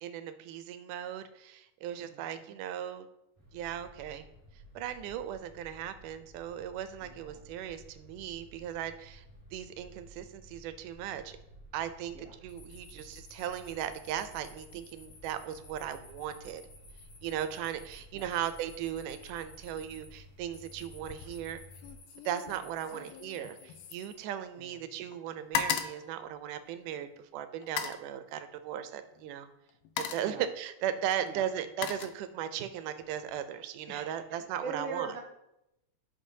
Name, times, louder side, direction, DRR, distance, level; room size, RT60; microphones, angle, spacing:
voice 1, 0.0-3.1 3.5-4.3 4.8-9.2 9.5-11.4 11.7-16.6 17.2-21.6 22.3-29.5 30.0-35.1, right 10 dB, 85° right, 10 dB, 2.1 m, -37 dB
voice 2, 2.1-2.4 7.0-7.4 12.1-12.4 18.1-18.2 22.6-23.1 24.6-24.8 30.2-30.4 31.2-31.4 33.9-35.2, right 4 dB, 60° right, -2 dB, 0.6 m, -43 dB
sound 1, 3.3-21.9, equal, 10° left, 0.8 m, -54 dB
sound 2, 12.5-24.2, left 3 dB, 65° left, 3.1 m, -56 dB
sound 3, 21.0-21.4 21.7-24.8 25.1-27.0 27.6-28.1 29.1-29.3 29.7-30.4 31.3-32.7 33.0-33.4, left 8 dB, 85° left, 2.2 m, -38 dB
11.0 x 6.1 x 2.7 m, 0.86 s
omnidirectional pair, 3.6 m